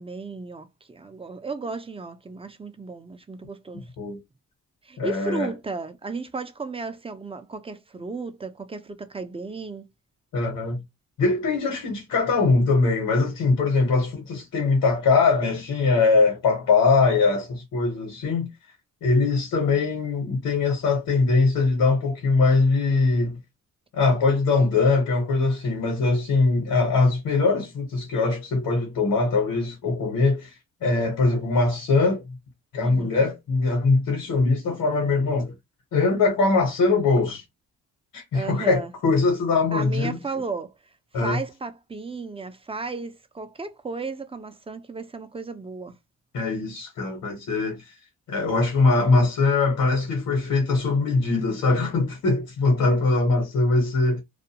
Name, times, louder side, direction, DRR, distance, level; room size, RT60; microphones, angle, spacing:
voice 1, 0.0-3.8 4.8-9.9 32.8-33.3 38.3-38.9 39.7-40.7 41.2-46.0, right 3 dB, 15° right, 0.5 m, -34 dB
voice 2, 5.0-5.5 10.3-10.8 11.2-18.5 19.0-23.4 23.9-30.5 30.8-32.4 32.7-35.5 35.9-37.4 38.1-40.2 41.1-41.4 46.3-47.9 48.3-54.2, left 3 dB, 75° left, 1.1 m, -22 dB
2.5 x 2.1 x 2.8 m
supercardioid pair, 60°, 33 cm